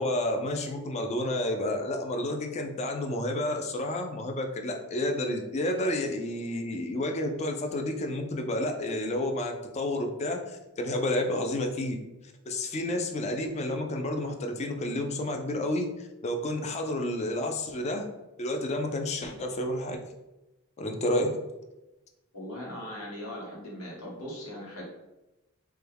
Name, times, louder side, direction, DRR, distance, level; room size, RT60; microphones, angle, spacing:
voice 1, 0.0-12.0 12.5-15.9 16.2-18.1 18.4-20.0 20.8-21.4, left 1 dB, 30° left, 4 dB, 0.4 m, -30 dB
voice 2, 22.3-24.8, left 1 dB, 90° left, -4 dB, 1.2 m, -39 dB
3.2 x 2.2 x 3.3 m, 1.0 s
head